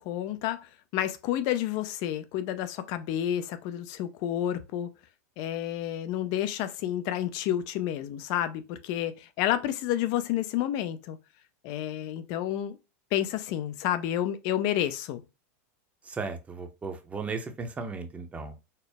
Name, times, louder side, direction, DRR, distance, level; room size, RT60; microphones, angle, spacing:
voice 1, 0.0-4.9 5.4-11.2 11.6-12.8 13.1-15.2, left 11 dB, 50° left, 0.5 m, -30 dB
voice 2, 16.0-18.8, right 4 dB, 15° right, 0.7 m, -36 dB
4.4 x 2.0 x 3.4 m
supercardioid pair, 135°, 8 cm